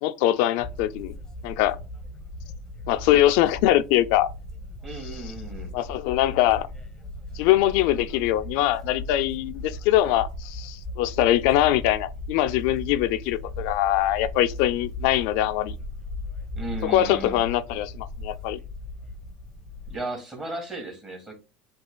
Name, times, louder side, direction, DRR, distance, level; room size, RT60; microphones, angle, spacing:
voice 1, 0.0-1.1 1.4-1.8 2.9-4.3 5.7-6.7 7.3-15.7 16.8-18.6, left 13 dB, 70° left, 0.3 m, -22 dB
sound 1, 0.6-20.0, left 1 dB, 15° left, 0.8 m, -38 dB
voice 2, 4.8-5.8 16.6-17.5 19.9-21.3, right 2 dB, 15° right, 1.7 m, -35 dB
7.8 x 2.8 x 2.2 m
supercardioid pair, 140°, 4 cm